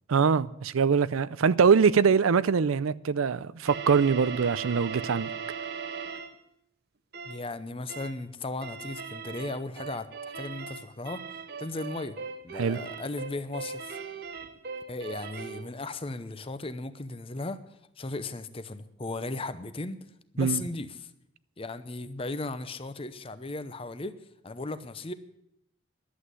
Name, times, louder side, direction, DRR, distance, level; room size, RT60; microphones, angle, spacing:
voice 1, 0.1-5.3 12.6-12.8 20.4-20.6, right 6 dB, 85° right, 0.5 m, -23 dB
sound 1, 3.7-6.4 7.1-7.5 7.9-8.2 8.6-15.7, right 5 dB, 50° right, 0.9 m, -39 dB
voice 2, 7.2-10.1 10.4-11.2 11.6-12.2 12.4-14.0 14.9-17.6 18.0-20.0 20.3-21.1 21.6-24.2 24.4-25.1, left 2 dB, 25° left, 0.7 m, -36 dB
11.5 x 8.2 x 9.6 m
head